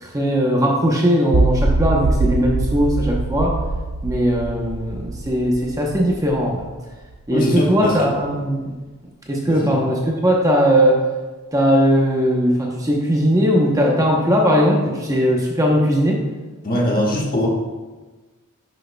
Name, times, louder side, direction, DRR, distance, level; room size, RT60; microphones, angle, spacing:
voice 1, 0.0-3.6 4.0-6.6 7.3-8.7 9.3-11.0 11.5-16.2, equal, 15° right, -1 dB, 0.8 m, -18 dB
sound 1, 1.3-7.4, right 3 dB, 65° right, 0.4 m, -23 dB
voice 2, 7.3-8.1 9.5-9.8 16.6-17.5, left 1 dB, 40° left, -2 dB, 1.4 m, -21 dB
10.5 x 6.3 x 2.2 m, 1.3 s
head